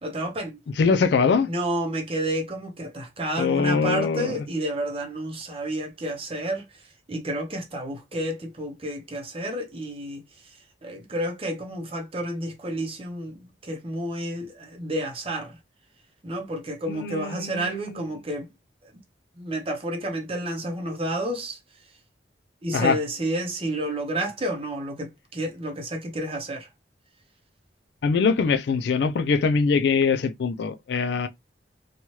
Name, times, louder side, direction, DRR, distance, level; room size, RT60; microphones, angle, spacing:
voice 1, 0.0-0.6 1.5-6.6 7.1-10.2 10.8-15.5 16.2-18.5 19.4-21.6 22.6-26.7, right 1 dB, 30° right, 0.7 m, -30 dB
voice 2, 0.8-1.5 3.4-4.5 16.9-18.1 22.7-23.0 28.0-31.3, left 5 dB, 65° left, 0.3 m, -23 dB
2.8 x 2.3 x 3.0 m
head